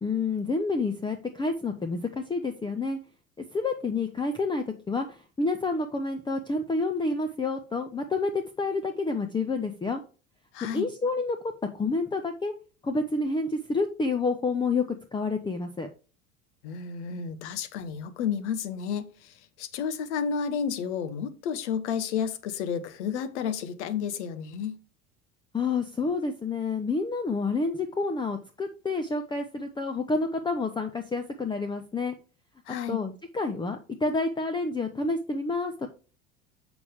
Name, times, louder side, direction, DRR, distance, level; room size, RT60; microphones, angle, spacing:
voice 1, 0.0-3.0 3.5-10.0 10.7-12.5 12.8-14.9 15.1-15.9 25.5-32.2 32.9-35.9, left 3 dB, 10° left, 0.8 m, -29 dB
voice 2, 10.5-10.9 16.6-24.8 32.7-33.0, left 7 dB, 65° left, 1.1 m, -31 dB
7.0 x 6.1 x 3.4 m
figure-of-eight pair, 70°, 38 cm